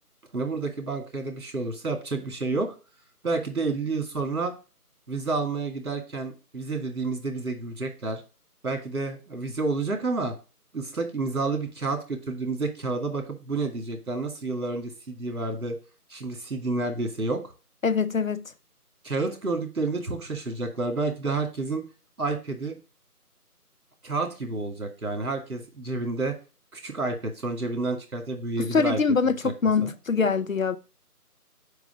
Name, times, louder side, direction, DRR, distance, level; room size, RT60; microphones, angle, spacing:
voice 1, 0.3-2.7 3.2-4.5 5.1-8.2 8.6-10.3 10.7-15.8 16.1-17.4 19.0-21.8 22.2-22.8 24.0-26.3 26.7-29.0 29.2-29.5 29.8-29.9, right 3 dB, 65° right, 2.2 m, -29 dB
voice 2, 17.8-18.4 28.7-30.8, left 5 dB, 60° left, 0.5 m, -23 dB
5.3 x 4.8 x 4.9 m
figure-of-eight pair, 170°, 46 cm